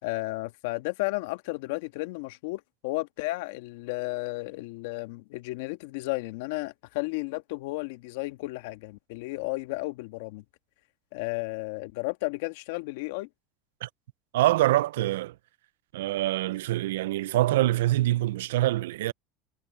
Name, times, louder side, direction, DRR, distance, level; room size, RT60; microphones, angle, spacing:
voice 1, 0.0-10.4 11.1-13.3, left 22 dB, 75° left, 1.6 m, -33 dB
voice 2, 14.3-15.3 15.9-19.1, right 15 dB, 85° right, 0.5 m, -25 dB
supercardioid pair, 100°, 0 cm